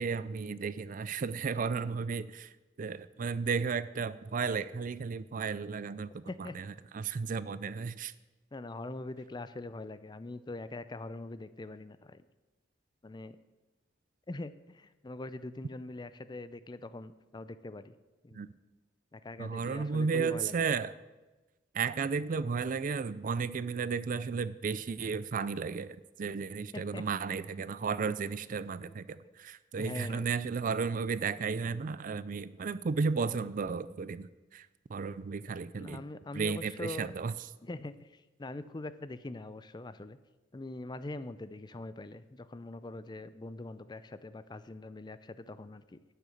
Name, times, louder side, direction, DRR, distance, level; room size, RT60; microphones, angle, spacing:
voice 1, 0.0-2.5 2.8-8.1 18.3-18.5 19.4-20.9 21.7-36.0 36.3-37.3, right 5 dB, 45° right, 16 dB, 0.4 m, -34 dB
voice 2, 8.5-12.2 13.0-13.4 14.3-17.9 18.2-18.4 19.1-20.6 26.7-27.0 29.8-30.2 35.8-37.1 37.6-40.2 40.5-46.0, left 2 dB, 20° left, 14 dB, 0.5 m, -43 dB
12.0 x 6.7 x 7.8 m, 1.2 s
head